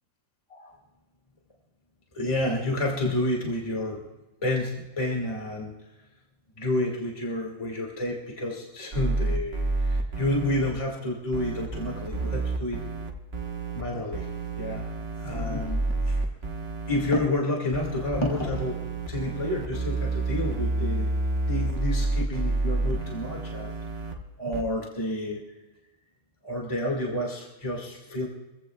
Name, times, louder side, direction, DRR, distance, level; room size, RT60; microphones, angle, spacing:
voice 1, 2.1-4.0 4.4-5.8 6.6-12.8 13.7-14.3 14.6-14.9 15.2-16.2 16.9-18.8 19.1-21.1 21.5-23.7 24.1-25.4 26.4-28.3, left 1 dB, 25° left, -2 dB, 2.1 m, -30 dB
sound 1, 8.9-10.7 11.3-13.8 14.1-17.2 17.7-24.1 24.5-24.6, right 2 dB, 50° right, 1.5 m, -29 dB
24.5 x 16.0 x 2.4 m, 1.1 s
omnidirectional pair, 1.4 m